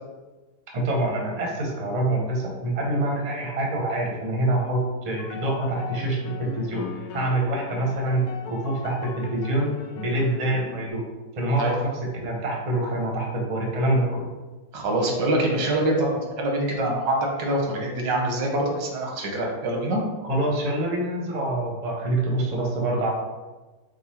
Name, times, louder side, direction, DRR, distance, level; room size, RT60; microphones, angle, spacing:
voice 1, 0.7-11.0 11.4-14.3 20.2-23.1, right 1 dB, 35° right, -1 dB, 0.7 m, -26 dB
sound 1, 5.2-10.9, left 6 dB, 70° left, 1.0 m, -39 dB
voice 2, 14.7-16.1 16.4-20.0, right 1 dB, 90° right, 0 dB, 1.6 m, -24 dB
4.8 x 2.4 x 4.2 m, 1.2 s
omnidirectional pair, 1.9 m